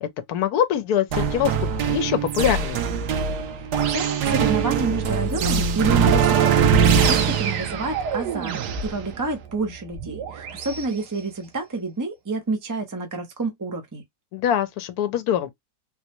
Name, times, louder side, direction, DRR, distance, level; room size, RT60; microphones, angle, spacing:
voice 1, 0.0-1.5 1.9-2.8 14.3-15.5, left 10 dB, 75° left, 1.1 m, -23 dB
sound 1, 1.1-10.8, right 7 dB, 85° right, 1.3 m, -22 dB
voice 2, 3.6-14.0, right 3 dB, 25° right, 0.4 m, -29 dB
3.8 x 2.1 x 2.9 m
omnidirectional pair, 1.7 m